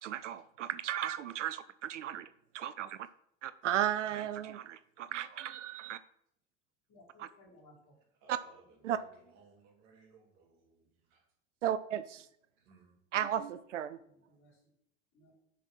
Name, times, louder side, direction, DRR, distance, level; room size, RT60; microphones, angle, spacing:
voice 1, 0.0-2.3 2.5-3.0 3.4-6.0 7.2-7.3 8.3-8.4 8.8-9.0 11.6-12.3 13.1-14.0, right 11 dB, 80° right, 14 dB, 0.6 m, -35 dB
voice 2, 6.9-7.9 14.0-14.6 15.1-15.3, left 2 dB, 45° left, -1 dB, 4.0 m, -61 dB
voice 3, 8.2-11.2 12.6-13.0, right 4 dB, 55° right, 1 dB, 3.0 m, -62 dB
6.9 x 6.0 x 6.1 m, 0.73 s
figure-of-eight pair, 80°, 36 cm